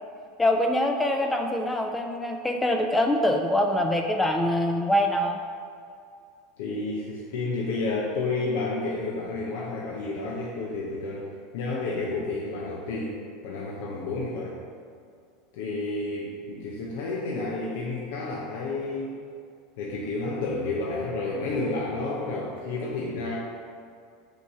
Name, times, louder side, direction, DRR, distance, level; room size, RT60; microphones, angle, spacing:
voice 1, 0.4-5.4, left 1 dB, 10° left, 3 dB, 0.4 m, -24 dB
voice 2, 6.6-11.3 11.5-13.2 13.4-14.6 15.5-19.1 19.8-23.4, left 3 dB, 75° left, -4 dB, 0.8 m, -30 dB
6.4 x 3.2 x 5.4 m, 2.3 s
supercardioid pair, 120°, 0 cm